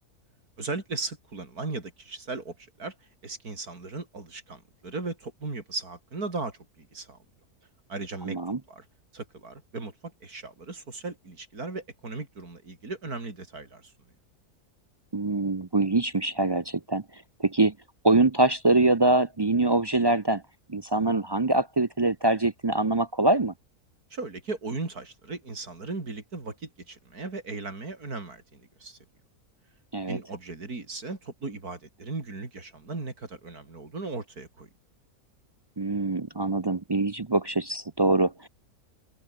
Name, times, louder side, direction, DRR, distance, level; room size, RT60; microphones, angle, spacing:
voice 1, 0.6-2.9 3.2-7.2 7.9-8.4 8.7-8.9 9.1-13.9 24.1-29.0 30.1-34.7, right 3 dB, 85° right, 4.5 m, -37 dB
voice 2, 8.3-8.6 15.1-17.0 17.4-17.7 18.0-20.4 20.7-23.5 29.9-30.2 35.8-38.5, right 2 dB, 35° right, 0.4 m, -24 dB
omnidirectional pair, 1.6 m